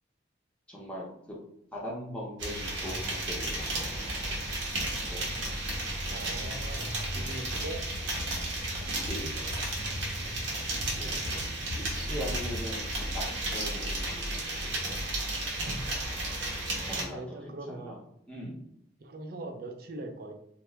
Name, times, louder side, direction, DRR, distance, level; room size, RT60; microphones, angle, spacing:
voice 1, 0.7-1.0 1.7-4.1 5.0-5.2 8.8-9.3 11.0-11.1 11.8-12.8 13.1-13.2 13.5-14.6 16.9-17.4 17.7-18.0 18.3-18.6, equal, 5° left, -5 dB, 0.6 m, -40 dB
sound 1, 2.4-17.1, right 1 dB, 80° right, 0.9 m, -33 dB
voice 2, 6.1-7.8 11.0-11.8 17.1-18.0 19.0-20.3, right 2 dB, 50° right, 4 dB, 0.4 m, -42 dB
2.8 x 2.2 x 3.3 m, 0.75 s
head